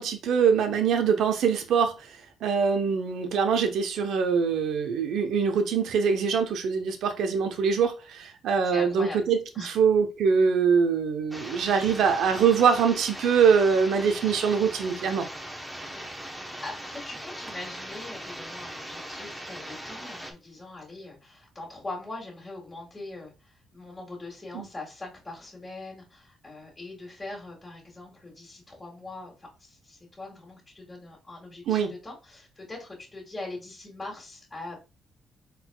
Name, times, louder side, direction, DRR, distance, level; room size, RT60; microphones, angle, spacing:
voice 1, 0.0-15.3 24.5-24.6 31.7-31.9, right 6 dB, 75° right, 0.8 m, -23 dB
voice 2, 8.6-9.2 9.5-9.7 15.5-15.6 15.9-16.1 16.6-34.8, left 2 dB, 20° left, 1.8 m, -42 dB
sound 1, 11.3-20.3, equal, 5° right, 0.9 m, -40 dB
4.1 x 4.0 x 2.3 m
cardioid pair, 90°, 0 cm